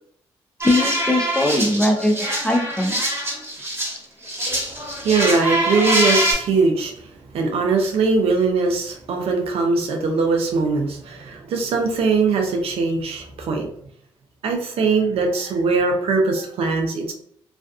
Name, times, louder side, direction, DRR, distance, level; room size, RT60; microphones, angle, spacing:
voice 1, 0.6-3.0, left 1 dB, 10° left, 3 dB, 0.5 m, -20 dB
sound 1, 0.6-4.0 4.2-6.3, right 1 dB, 25° right, 1.3 m, -24 dB
voice 2, 5.0-6.9 7.3-13.7 14.4-17.1, right 4 dB, 70° right, 2 dB, 0.6 m, -21 dB
2.5 x 2.3 x 2.3 m, 0.65 s
supercardioid pair, 60°, 10 cm